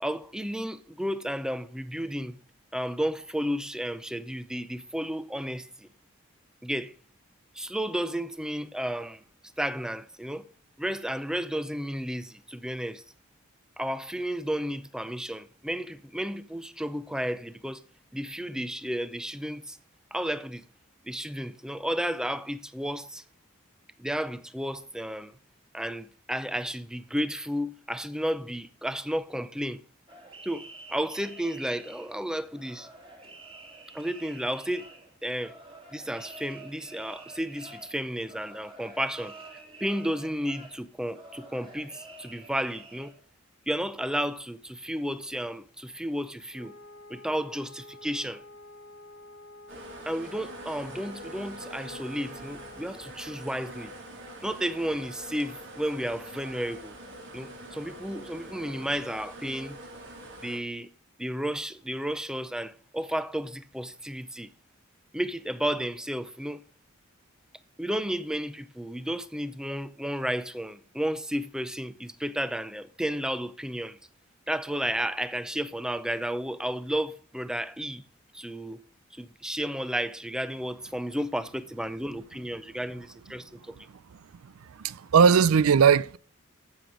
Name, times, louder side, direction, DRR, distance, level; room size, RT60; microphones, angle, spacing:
voice 1, 0.0-2.4 2.7-5.9 6.6-6.9 7.5-9.2 9.6-10.5 10.8-13.0 13.8-17.8 18.1-19.8 20.1-20.6 21.0-23.2 24.0-25.4 25.7-29.8 30.4-32.9 33.9-34.9 35.2-35.5 35.9-43.1 43.7-46.7 47.1-48.4 50.1-53.9 54.4-57.0 57.3-59.8 60.4-60.9 61.2-64.5 65.1-66.6 67.8-74.0 74.5-78.0 78.3-78.8 79.1-83.7, equal, 5° right, 0.5 m, -32 dB
sound 1, 30.1-43.1, right 3 dB, 25° right, 2.6 m, -48 dB
Wind instrument woodwind instrument, 46.5-53.2, left 2 dB, 65° left, 1.3 m, -49 dB
sound 2, 49.7-60.6, right 1 dB, 60° right, 3.4 m, -44 dB
voice 2, 84.8-86.2, right 6 dB, 85° right, 0.4 m, -19 dB
13.5 x 7.0 x 4.9 m
head